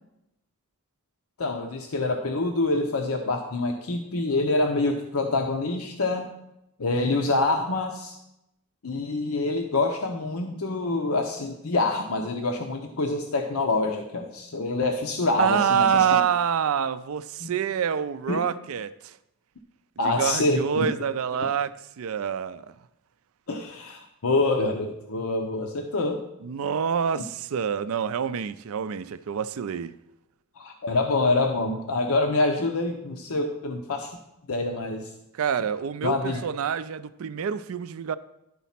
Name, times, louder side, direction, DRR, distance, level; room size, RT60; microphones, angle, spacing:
voice 1, 1.4-6.3 6.8-8.2 8.8-16.2 17.4-17.5 18.3-18.4 20.0-20.9 23.5-26.2 30.6-34.1 34.5-35.1 36.0-36.4, left 2 dB, 75° left, 0.7 m, -26 dB
voice 2, 15.4-19.2 20.0-22.7 26.4-29.9 35.3-38.2, right 7 dB, 70° right, 0.4 m, -26 dB
11.0 x 4.1 x 5.8 m
head